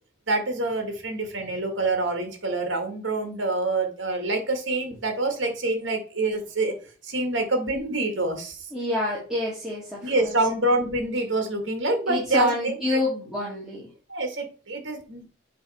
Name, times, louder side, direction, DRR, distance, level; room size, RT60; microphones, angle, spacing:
voice 1, 0.3-6.7 7.1-8.6 10.0-13.0 14.1-15.3, right 2 dB, 60° right, 5 dB, 2.1 m, -26 dB
voice 2, 8.7-10.4 12.1-13.9, left 1 dB, ahead, -7 dB, 2.0 m, -28 dB
7.7 x 3.4 x 5.6 m, 0.36 s
head